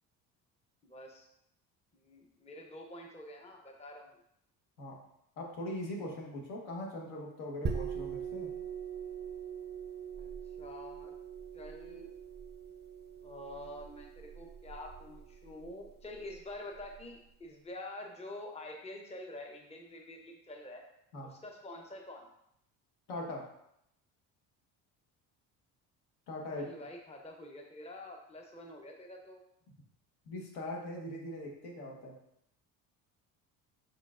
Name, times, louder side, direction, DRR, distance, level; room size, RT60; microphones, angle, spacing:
voice 1, 0.8-1.3 1.9-4.2 10.2-10.3 10.6-11.1 11.5-12.1 13.2-20.8 21.3-22.3 26.5-29.4, left 1 dB, 15° left, 2 dB, 0.7 m, -47 dB
voice 2, 5.4-8.5 21.1-21.4 23.1-23.5 26.3-26.7 29.7-29.8 30.3-32.2, left 1 dB, 80° left, -1 dB, 1.3 m, -41 dB
sound 1, 7.7-17.0, right 7 dB, 25° right, 0.5 m, -42 dB
4.8 x 4.5 x 2.4 m, 0.77 s
supercardioid pair, 85°, 39 cm